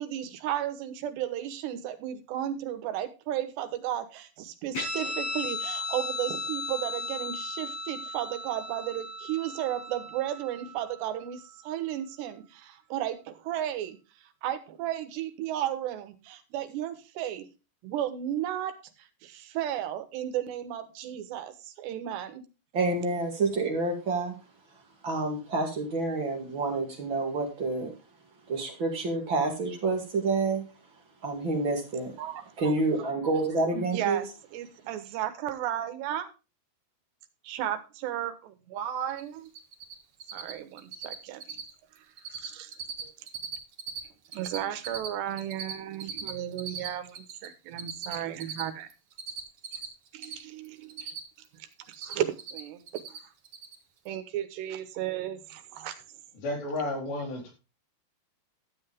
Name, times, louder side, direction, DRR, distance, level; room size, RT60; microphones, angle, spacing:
voice 1, 0.0-14.0 14.4-17.5 17.8-18.7 19.2-22.4 32.2-32.4 33.7-34.3 34.5-36.3 37.4-39.5 40.3-41.6 42.3-42.7 43.0-43.1 44.3-48.9 50.1-51.1 51.6-52.8 53.1-53.2 54.1-55.9, right 11 dB, 85° right, 3.3 m, -34 dB
Guitar, 4.7-11.7, left 2 dB, 40° left, 7.0 m, -36 dB
voice 2, 22.7-24.3 25.0-27.9 28.5-30.6 31.2-32.1 32.6-34.2, right 3 dB, 35° right, 2.3 m, -28 dB
Cricket, 39.1-39.2 39.5-39.9 40.2-40.5 40.8-41.1 41.4-41.7 42.0-42.5 42.7-44.0 44.2-47.5 47.8-50.3 50.6-51.5 51.7-52.6 52.9-53.2 53.4-53.7, right 7 dB, 70° right, 1.4 m, -37 dB
voice 3, 56.4-57.5, left 2 dB, 85° left, 5.7 m, -32 dB
13.0 x 8.0 x 3.5 m
omnidirectional pair, 4.8 m